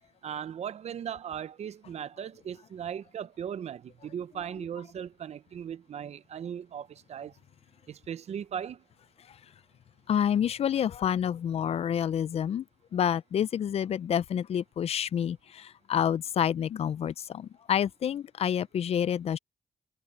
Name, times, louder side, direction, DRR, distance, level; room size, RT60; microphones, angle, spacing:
voice 1, 0.2-7.3 7.9-8.8, right 8 dB, 65° right, 0.6 m, -38 dB
voice 2, 10.1-12.6 12.9-19.4, left 9 dB, 60° left, 0.4 m, -28 dB
cardioid pair, 105°, 12 cm